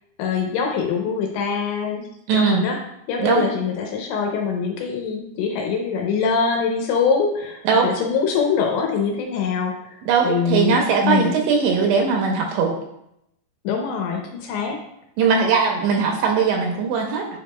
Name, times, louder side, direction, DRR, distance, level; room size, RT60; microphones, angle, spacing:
voice 1, 0.2-2.8 3.1-10.0 10.2-11.3 13.6-14.8, left 6 dB, 80° left, 1 dB, 2.8 m, -23 dB
voice 2, 2.3-2.6 3.2-3.5 7.6-7.9 10.1-12.7 15.2-17.3, right 5 dB, 80° right, 1 dB, 2.8 m, -19 dB
10.0 x 4.9 x 2.3 m, 0.80 s
omnidirectional pair, 5.6 m